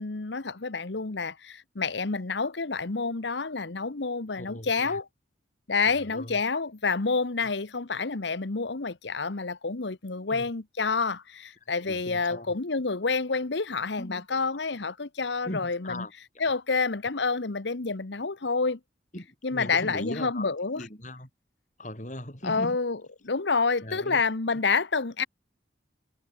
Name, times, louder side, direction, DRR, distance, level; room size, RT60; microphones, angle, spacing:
voice 1, 0.0-5.1 5.7-16.1 16.4-18.8 19.4-20.8 22.4-23.0 23.2-25.3, left 4 dB, 75° left, 1.1 m, -28 dB
voice 2, 4.4-5.0 5.9-6.4 10.3-10.5 11.9-12.5 14.0-14.4 15.4-16.1 19.1-20.5 20.8-21.3 21.8-22.8 23.8-24.2, left 1 dB, 40° left, 5.9 m, -39 dB
head